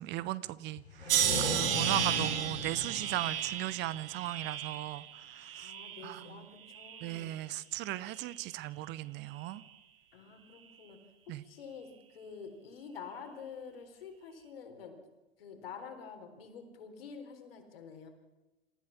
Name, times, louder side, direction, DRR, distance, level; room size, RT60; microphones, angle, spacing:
voice 1, 0.0-5.7 6.0-6.4 7.0-9.6 11.3-11.4, right 16 dB, 35° right, 18 dB, 0.8 m, -37 dB
sound 1, 0.8-4.4, left 3 dB, 85° left, 4.1 m, -38 dB
sound 2, 1.1-6.2 6.7-7.4 8.1-8.4, right 10 dB, 60° right, 2.5 m, -34 dB
voice 2, 5.6-7.4 10.1-11.0 11.3-15.0 15.4-18.1, left 6 dB, 60° left, 5 dB, 4.2 m, -48 dB
27.0 x 15.0 x 7.0 m, 1.1 s
figure-of-eight pair, 85°, 32 cm